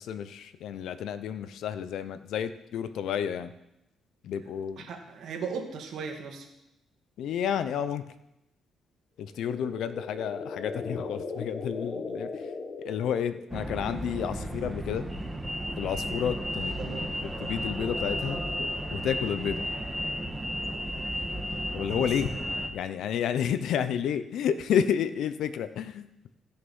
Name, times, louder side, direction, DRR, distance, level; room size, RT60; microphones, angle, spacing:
voice 1, 0.0-3.5 4.2-4.9 7.2-8.0 9.2-12.5 12.8-15.1 15.8-16.8 17.4-19.7 21.7-22.3 22.7-26.1, left 8 dB, 75° left, 12 dB, 0.7 m, -31 dB
voice 2, 4.8-6.5 16.8-17.1 22.0-22.1, right 5 dB, 70° right, 2 dB, 2.2 m, -37 dB
sound 1, 9.3-13.7, left 4 dB, 40° left, 1.2 m, -38 dB
sound 2, 13.5-22.7, equal, 10° right, 1.5 m, -33 dB
15.5 x 6.7 x 5.5 m, 0.88 s
cardioid pair, 90°, 0 cm